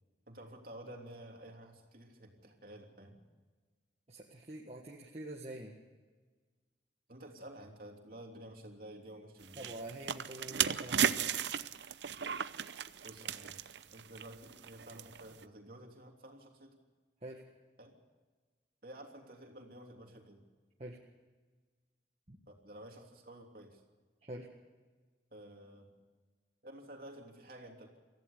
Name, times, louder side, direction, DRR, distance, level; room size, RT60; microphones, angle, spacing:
voice 1, 0.3-3.2 7.1-9.7 13.0-13.6 13.9-16.8 17.8-18.0 18.8-20.4 22.5-23.8 25.3-25.9 26.6-28.0, right 1 dB, 50° right, 2 dB, 3.2 m, -51 dB
voice 2, 4.1-5.8 9.6-11.3 17.2-17.4 20.8-21.0 22.3-22.4 24.2-24.5, right 1 dB, 35° right, -1 dB, 1.7 m, -46 dB
sound 1, 9.4-15.4, right 8 dB, 75° right, 0.7 m, -35 dB
25.0 x 15.5 x 6.9 m, 1.4 s
head